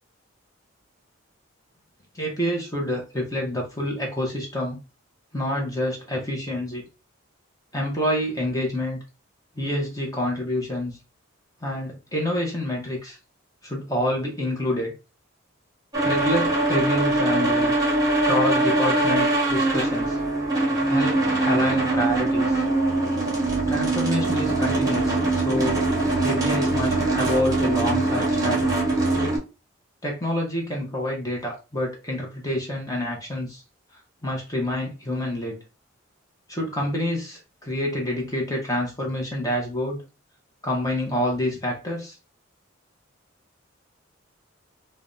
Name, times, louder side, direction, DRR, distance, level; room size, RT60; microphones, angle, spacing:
voice 1, 2.1-4.8 5.3-6.8 7.7-9.0 9.6-11.0 11.6-13.2 13.6-14.9 16.0-17.7 18.2-20.2 20.9-22.6 23.7-25.8 26.2-28.8 30.0-33.6 34.2-35.6 36.5-40.0 40.6-42.2, left 1 dB, 15° left, 0.7 m, -27 dB
sound 1, 15.9-29.4, right 2 dB, 20° right, 1.0 m, -22 dB
3.3 x 2.1 x 2.5 m
head